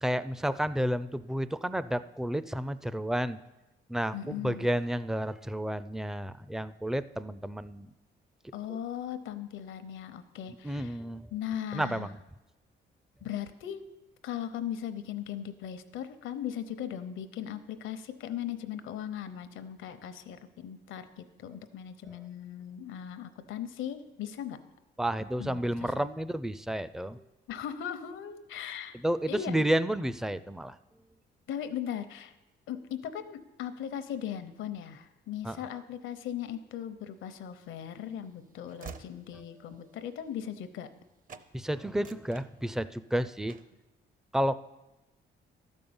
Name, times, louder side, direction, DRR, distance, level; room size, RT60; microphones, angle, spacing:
voice 1, 0.0-3.4 3.9-7.9 10.6-11.3 11.7-12.2 25.0-27.2 28.9-30.8 35.4-35.6 41.5-43.6 44.3-44.6, right 1 dB, ahead, 14 dB, 0.4 m, -31 dB
voice 2, 4.1-4.7 8.5-11.0 11.3-12.1 13.2-13.8 14.2-24.6 25.4-26.1 27.5-29.6 31.5-32.3 32.7-40.9, left 10 dB, 80° left, 11 dB, 0.8 m, -38 dB
Train / Slam, 37.4-41.0 41.3-41.5 41.9-43.1 43.5-43.8, right 6 dB, 45° right, 0.7 m, -51 dB
12.5 x 5.4 x 7.1 m, 1.0 s
cardioid pair, 90°, 20 cm